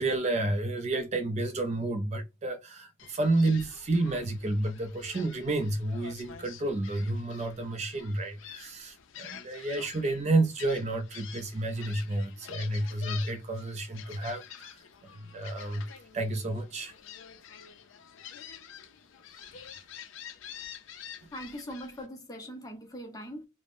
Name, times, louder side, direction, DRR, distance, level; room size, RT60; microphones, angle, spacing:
voice 1, 0.0-14.8 15.1-16.9 19.5-19.6, right 2 dB, 35° right, 0.3 m, -30 dB
Gull seagull, 3.0-22.1, left 8 dB, 70° left, 0.4 m, -48 dB
voice 2, 21.3-23.5, equal, 20° left, 0.6 m, -41 dB
3.3 x 2.0 x 2.5 m
head